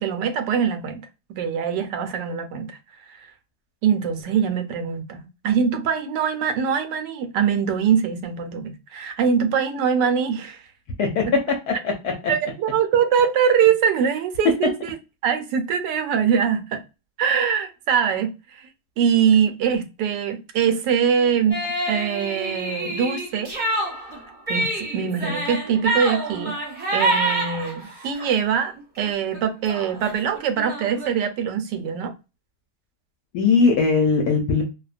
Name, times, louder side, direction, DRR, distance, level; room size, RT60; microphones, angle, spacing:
voice 1, 0.0-2.8 3.8-10.6 12.3-14.9 15.2-16.8 17.2-18.7 19.0-21.6 21.9-23.5 24.5-26.6 26.9-32.1, right 7 dB, 85° right, 1.2 m, -23 dB
voice 2, 11.7-12.3 33.3-34.6, left 4 dB, 70° left, 1.0 m, -20 dB
sound 1, 21.5-28.3 28.8-29.1 29.3-29.4 29.7-31.1, right 2 dB, 25° right, 0.8 m, -27 dB
2.8 x 2.1 x 2.4 m
omnidirectional pair, 1.8 m